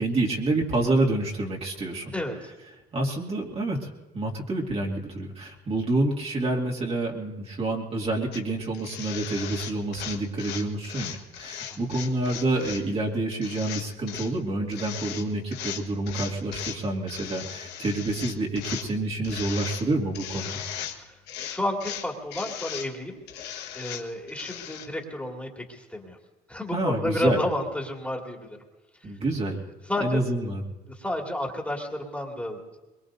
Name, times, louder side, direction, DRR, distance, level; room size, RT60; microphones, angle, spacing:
voice 1, 0.0-2.1 2.9-20.6 26.7-27.4 29.0-29.6 30.0-30.7, right 2 dB, 35° right, -1 dB, 2.4 m, -28 dB
voice 2, 2.1-2.5 11.7-11.8 21.0-21.1 21.4-23.2 23.7-26.2 26.5-28.6 29.9-30.2 30.9-32.6, left 1 dB, 10° left, 0 dB, 2.5 m, -31 dB
sound 1, 8.3-8.4 8.7-12.8 13.3-14.3 14.7-15.2 15.5-16.8 17.1-18.9 19.2-19.9 20.1-21.0 21.3-22.9 23.3-24.9, left 10 dB, 85° left, 1.4 m, -37 dB
23.0 x 22.0 x 2.7 m, 1.1 s
cardioid pair, 110°, 17 cm